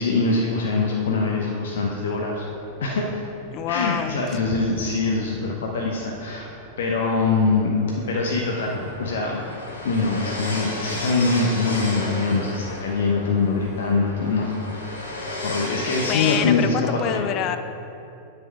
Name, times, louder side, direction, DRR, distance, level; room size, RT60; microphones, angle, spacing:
voice 1, 0.0-2.4 2.8-3.2 3.7-6.5 6.8-7.7 8.1-9.4 9.8-15.1 15.4-17.3, left 3 dB, 60° left, -1 dB, 0.8 m, -23 dB
sound 1, 2.2-16.4, left 1 dB, 80° left, 1.7 m, -35 dB
voice 2, 3.5-4.1 16.1-17.6, left 11 dB, 40° left, 10 dB, 0.4 m, -26 dB
9.3 x 6.5 x 4.7 m, 2.7 s
figure-of-eight pair, 90°, 0 cm